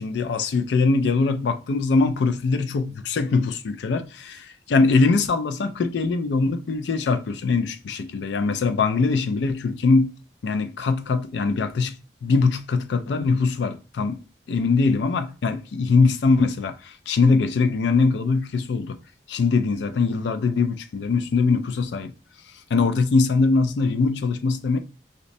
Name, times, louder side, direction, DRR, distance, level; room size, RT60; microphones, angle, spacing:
voice 1, 0.0-10.1 10.4-12.0 12.2-14.2 14.5-19.0 19.3-22.1 22.7-24.8, left 4 dB, 85° left, 0.4 m, -22 dB
5.2 x 2.0 x 2.6 m
head